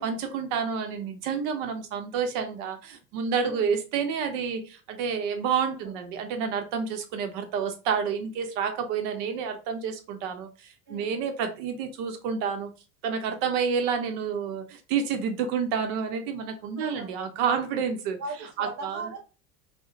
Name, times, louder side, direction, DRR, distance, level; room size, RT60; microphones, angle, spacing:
voice 1, 0.0-12.7 13.0-18.2 18.6-19.0, right 6 dB, 60° right, 0.7 m, -29 dB
voice 2, 3.4-3.8 5.7-5.9 10.9-11.2 16.8-17.1 17.5-17.8 18.2-19.2, right 3 dB, 35° right, 1.2 m, -39 dB
2.8 x 2.1 x 2.4 m
supercardioid pair, 140°, 45 cm